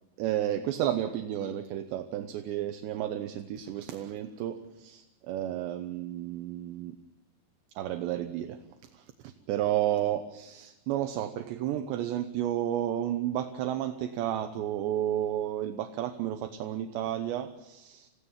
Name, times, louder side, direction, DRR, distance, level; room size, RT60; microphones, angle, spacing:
voice 1, 0.2-7.0 7.8-18.1, right 12 dB, 75° right, 7 dB, 2.9 m, -32 dB
28.0 x 17.0 x 7.4 m, 1.0 s
omnidirectional pair, 5.7 m